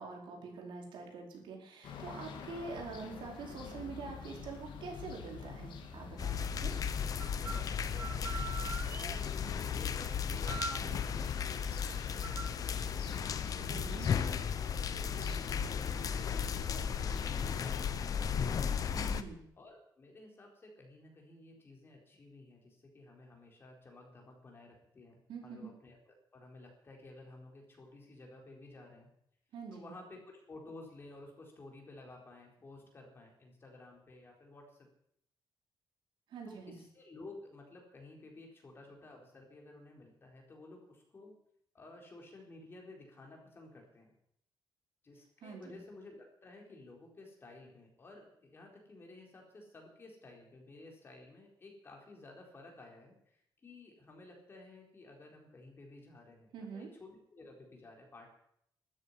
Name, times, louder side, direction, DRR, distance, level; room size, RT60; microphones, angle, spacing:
voice 1, 0.0-6.7 10.6-11.0 13.7-14.1 18.9-19.4 25.3-25.7 29.5-29.9 36.3-36.8 45.4-45.8 56.5-56.9, right 4 dB, 75° right, 1 dB, 4.8 m, -45 dB
sound 1, 1.8-17.7, left 6 dB, 80° left, 2.7 m, -47 dB
sound 2, 6.2-19.2, left 7 dB, 45° left, 0.9 m, -35 dB
sound 3, 7.2-7.6 7.9-9.2 10.4-10.8 12.2-12.5, right 5 dB, 25° right, 1.1 m, -42 dB
voice 2, 7.9-8.3 8.8-18.7 19.6-29.1 29.7-34.9 36.5-41.3 41.7-44.1 45.0-53.2 53.6-58.3, left 2 dB, 30° left, 1 dB, 4.1 m, -54 dB
13.0 x 9.6 x 9.9 m, 0.70 s
wide cardioid pair, 170°, 8 cm